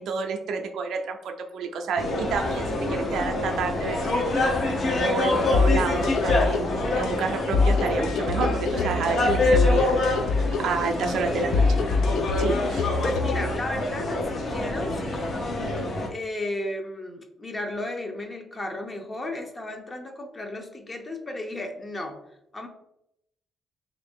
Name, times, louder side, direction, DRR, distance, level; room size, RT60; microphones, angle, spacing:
voice 1, 0.0-4.6 5.0-6.7 6.9-9.9 10.6-11.7 12.4-12.9, right 5 dB, 75° right, 5 dB, 0.4 m, -29 dB
sound 1, 2.0-16.1, left 2 dB, 55° left, 0.8 m, -26 dB
sound 2, 5.5-13.5, left 4 dB, 75° left, 0.3 m, -25 dB
voice 2, 11.2-11.7 13.0-15.8 16.1-22.2 22.5-22.7, left 1 dB, 25° left, 4 dB, 0.6 m, -34 dB
2.9 x 2.6 x 3.5 m, 0.79 s
cardioid pair, 90°, 0 cm